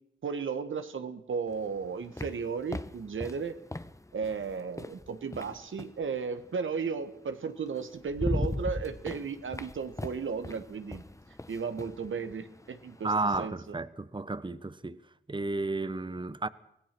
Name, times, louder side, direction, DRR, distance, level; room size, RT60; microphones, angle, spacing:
voice 1, 0.2-3.6 4.1-11.0 11.5-13.1 13.4-13.8, right 5 dB, 90° right, 1.4 m, -34 dB
sound 1, 1.5-6.0 7.3-7.4 7.8-13.5, left 2 dB, 15° left, 0.9 m, -39 dB
voice 2, 13.0-15.0 15.3-16.5, right 3 dB, 25° right, 1.0 m, -32 dB
24.5 x 18.0 x 6.1 m
cardioid pair, 45°, 20 cm